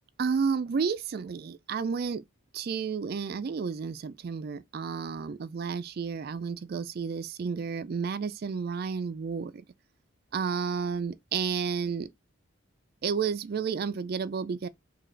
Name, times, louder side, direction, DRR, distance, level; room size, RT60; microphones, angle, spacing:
voice 1, 0.2-2.2 2.5-9.6 10.3-12.1 13.0-14.7, right 5 dB, 45° right, 0.3 m, -31 dB
3.8 x 3.3 x 3.3 m
head